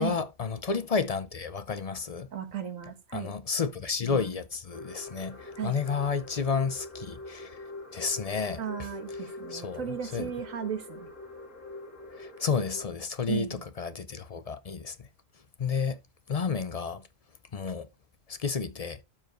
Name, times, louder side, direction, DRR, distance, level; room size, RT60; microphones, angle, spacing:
voice 1, 0.0-2.3 3.1-7.6 7.9-8.6 9.5-9.8 10.1-10.3 12.2-15.0 15.6-16.0 16.3-17.0 17.5-17.9 18.3-19.0, left 5 dB, 50° left, 0.4 m, -31 dB
voice 2, 2.3-3.3 5.6-5.7 8.6-11.1 13.3-13.7, right 8 dB, 75° right, 1.7 m, -35 dB
sound 1, 4.7-12.9, left 2 dB, 65° left, 2.7 m, -44 dB
12.5 x 4.6 x 3.0 m
omnidirectional pair, 1.4 m